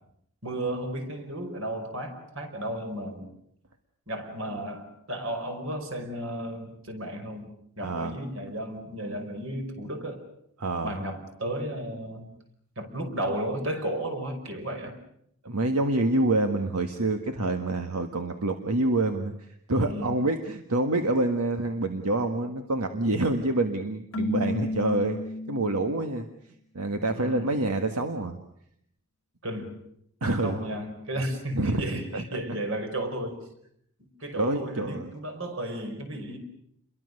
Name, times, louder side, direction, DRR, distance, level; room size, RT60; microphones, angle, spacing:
voice 1, 0.4-3.3 4.1-7.5 7.8-10.2 10.8-12.3 12.8-15.0 19.8-20.1 27.2-27.5 29.4-29.8 30.4-33.4 34.2-36.4, right 1 dB, 60° right, 5 dB, 5.2 m, -33 dB
voice 2, 7.8-8.1 10.6-11.0 15.4-25.2 25.5-26.3 26.7-28.4 30.2-30.6 31.5-31.8 32.1-32.2 34.4-35.1, right 2 dB, 85° right, 6 dB, 1.7 m, -27 dB
Keyboard (musical), 24.1-26.1, left 1 dB, 65° left, 1.1 m, -32 dB
30.0 x 23.0 x 6.7 m, 0.72 s
head